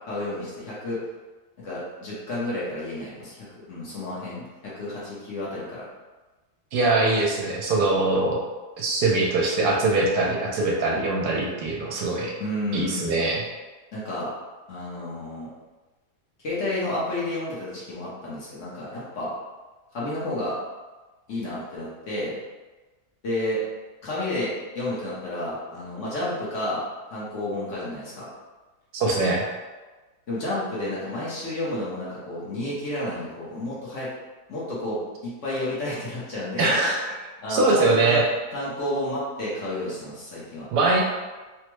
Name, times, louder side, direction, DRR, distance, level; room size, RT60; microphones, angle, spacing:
voice 1, 0.1-1.0 1.6-5.8 12.4-13.2 13.9-14.3 14.7-15.5 16.4-19.3 19.9-20.6 21.3-22.3 23.2-23.6 24.0-26.8 27.1-28.3 30.3-34.1 34.5-36.7 37.4-38.2 38.5-40.7, left 1 dB, 55° left, -8 dB, 1.0 m, -31 dB
voice 2, 6.7-8.4 8.8-12.3 12.7-13.4 28.9-29.5 36.6-37.0 37.5-38.2 40.7-41.0, right 2 dB, 80° right, -2 dB, 1.2 m, -22 dB
3.4 x 2.1 x 3.0 m, 1.2 s
omnidirectional pair, 1.7 m